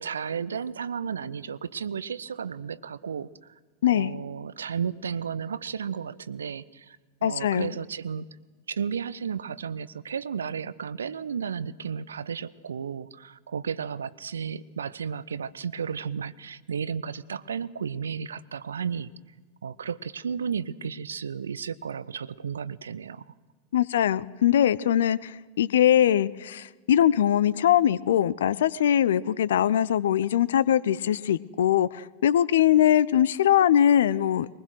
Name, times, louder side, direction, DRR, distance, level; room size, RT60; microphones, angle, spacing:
voice 1, 0.0-3.3 3.9-8.3 8.7-19.1 19.6-23.2, right 7 dB, 70° right, 19 dB, 0.6 m, -33 dB
voice 2, 3.8-4.1 7.2-7.7 23.7-34.5, left 10 dB, 60° left, 21 dB, 0.5 m, -22 dB
22.5 x 20.0 x 6.3 m, 1.4 s
figure-of-eight pair, 90°, 0 cm